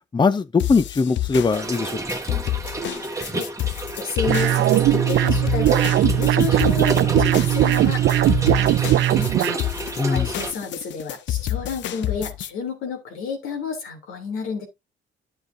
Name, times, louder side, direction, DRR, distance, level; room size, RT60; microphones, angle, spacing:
voice 1, 0.1-2.2 10.0-10.3, left 4 dB, 25° left, 0.6 m, -21 dB
sound 1, 0.6-12.5, left 14 dB, 65° left, 0.6 m, -29 dB
Trickle dribble / Fill (with liquid), 1.5-10.5, right 2 dB, 15° right, 1.3 m, -31 dB
voice 2, 3.1-3.5 4.0-9.3 10.1-14.7, left 5 dB, 85° left, 3.0 m, -31 dB
sound 2, 4.3-9.6, right 13 dB, 70° right, 0.5 m, -19 dB
10.5 x 7.0 x 2.7 m
cardioid pair, 90°, 20 cm